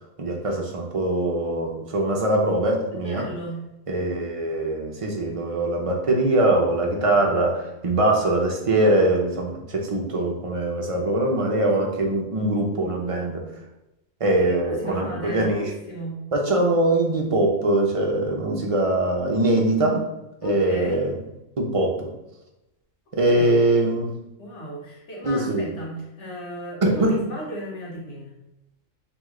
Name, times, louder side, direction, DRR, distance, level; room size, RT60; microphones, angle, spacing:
voice 1, 0.2-3.2 3.9-13.4 14.2-15.7 16.3-20.0 20.4-21.2 21.6-22.1 23.1-24.1 25.2-25.7 26.8-27.2, right 1 dB, 40° right, 0 dB, 0.5 m, -22 dB
voice 2, 3.0-3.6 13.0-13.2 14.3-16.2 20.4-21.0 23.2-23.6 24.4-28.3, equal, 65° left, -3 dB, 1.4 m, -35 dB
3.1 x 3.0 x 3.7 m, 0.92 s
omnidirectional pair, 1.4 m